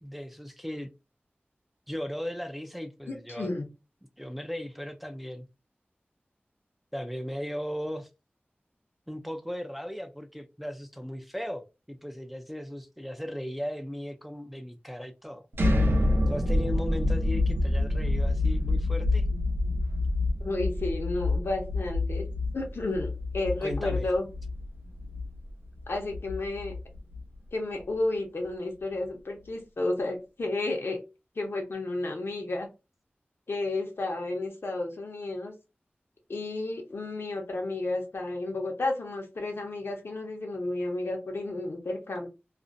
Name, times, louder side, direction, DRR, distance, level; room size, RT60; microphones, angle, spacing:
voice 1, 0.0-0.9 1.9-3.5 4.2-5.5 6.9-8.1 9.1-15.5 16.3-19.3 23.6-24.1, equal, 5° right, 0.3 m, -37 dB
voice 2, 3.1-3.7 20.4-22.3 22.5-24.3 25.9-26.7 27.5-31.0 31.4-32.7 33.5-35.5 36.3-42.3, left 2 dB, 80° left, 0.7 m, -32 dB
sound 1, 15.5-27.4, left 2 dB, 70° right, 0.5 m, -27 dB
2.5 x 2.0 x 2.5 m
wide cardioid pair, 70°, 4 cm